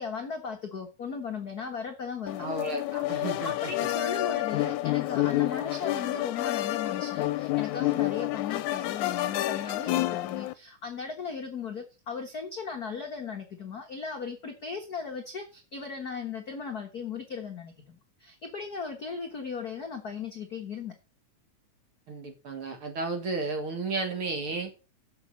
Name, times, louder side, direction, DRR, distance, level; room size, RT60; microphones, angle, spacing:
voice 1, 0.0-2.5 3.4-20.9, left 5 dB, 50° left, 2 dB, 1.1 m, -37 dB
sound 1, 2.3-10.5, left 16 dB, 80° left, 2.0 m, -29 dB
voice 2, 2.4-3.7 22.1-24.7, right 3 dB, 50° right, 5 dB, 2.1 m, -33 dB
7.2 x 7.1 x 6.3 m, 0.31 s
omnidirectional pair, 3.6 m